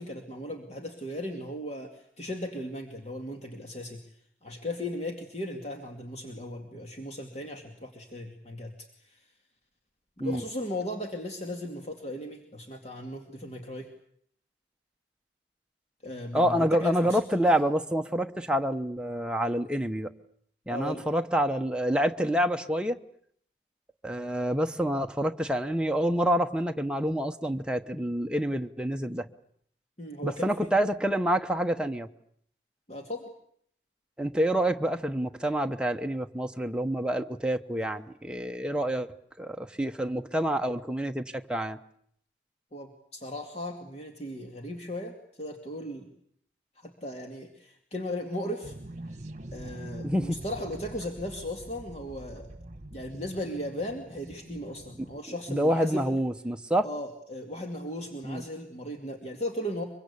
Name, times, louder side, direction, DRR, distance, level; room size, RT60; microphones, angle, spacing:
voice 1, 0.0-4.0 4.4-9.3 10.2-13.9 16.0-17.2 20.7-21.1 30.0-30.7 32.9-33.3 42.7-46.1 46.8-48.8 49.5-52.5 52.9-56.0 56.8-59.8, left 1 dB, 35° left, 2 dB, 2.4 m, -37 dB
voice 2, 16.3-20.1 20.7-23.0 24.0-29.3 30.2-32.1 34.2-39.1 39.4-41.8 50.0-50.4 55.5-56.9 58.2-58.4, equal, 5° right, 4 dB, 1.0 m, -27 dB
sound 1, 48.6-55.2, right 1 dB, 40° right, 1.4 m, -44 dB
24.0 x 24.0 x 8.4 m, 0.66 s
head